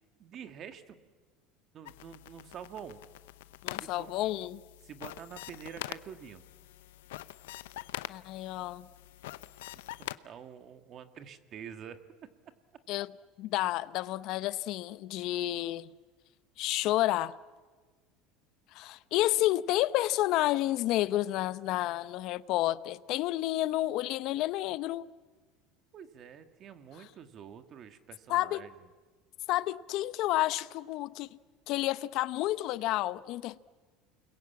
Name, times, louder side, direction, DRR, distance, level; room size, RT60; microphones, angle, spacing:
voice 1, 0.2-1.0 1.7-3.0 3.7-4.1 4.8-6.4 9.7-12.0 25.9-28.7, right 8 dB, 40° right, 1.9 m, -47 dB
sound 1, 1.8-10.2, left 16 dB, 90° left, 0.7 m, -44 dB
voice 2, 3.6-4.6 8.1-8.9 12.9-13.1 13.4-15.9 16.6-17.4 18.7-25.1 28.3-28.6 29.5-31.4 31.7-33.6, left 15 dB, 60° left, 0.8 m, -30 dB
29.0 x 21.5 x 8.6 m
supercardioid pair, 120°, 0 cm